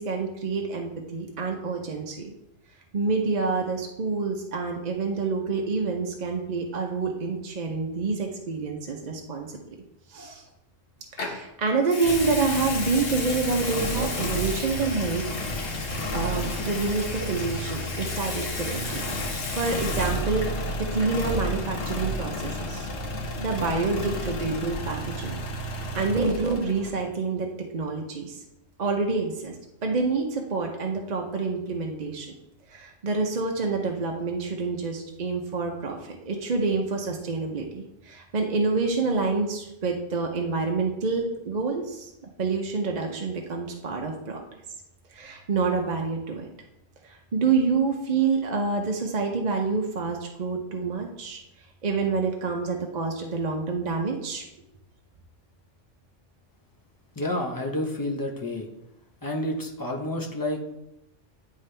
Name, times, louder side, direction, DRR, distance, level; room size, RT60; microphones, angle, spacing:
voice 1, 0.0-2.2 2.9-9.5 10.1-10.4 11.1-15.2 16.1-19.0 19.5-22.9 23.4-25.4 25.7-27.5 27.7-28.4 28.8-29.6 29.8-32.3 32.7-42.1 42.4-44.4 45.1-46.5 47.0-51.4 51.8-54.4, right 4 dB, 40° right, 1 dB, 0.7 m, -27 dB
Water tap faucet / Sink (filling or washing) / Liquid, 11.2-11.4 11.8-20.6 20.9-21.2, left 3 dB, 50° left, 1.1 m, -35 dB
sound 1, 12.0-27.1, left 1 dB, 85° left, 1.3 m, -32 dB
voice 2, 57.1-58.7 59.2-60.7, left 1 dB, 20° left, 0 dB, 0.8 m, -29 dB
9.8 x 3.7 x 3.3 m, 0.87 s
omnidirectional pair, 1.3 m